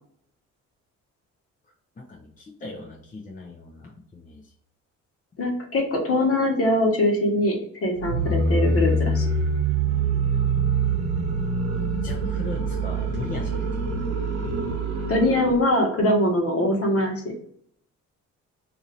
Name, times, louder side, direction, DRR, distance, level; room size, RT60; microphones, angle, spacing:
voice 1, 2.0-4.5 12.0-14.1, left 2 dB, 25° left, -1 dB, 0.7 m, -39 dB
voice 2, 5.4-9.2 15.1-17.2, left 1 dB, 50° left, 1 dB, 1.2 m, -22 dB
sound 1, 8.0-15.6, right 3 dB, 60° right, 1.1 m, -25 dB
2.7 x 2.6 x 4.2 m, 0.65 s
cardioid pair, 90°, 30 cm